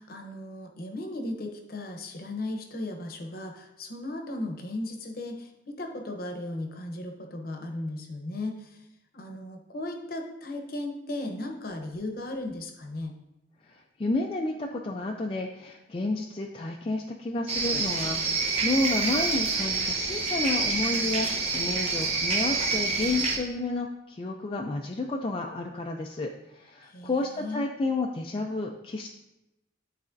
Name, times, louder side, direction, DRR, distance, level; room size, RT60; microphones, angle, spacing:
voice 1, 0.0-8.8 9.1-13.1 26.9-27.7, left 1 dB, 50° left, 4 dB, 0.8 m, -36 dB
voice 2, 13.6-29.1, left 2 dB, 30° left, 1 dB, 0.3 m, -31 dB
sound 1, 17.5-23.4, right 4 dB, 35° right, 0.8 m, -27 dB
9.6 x 4.1 x 2.6 m, 0.92 s
head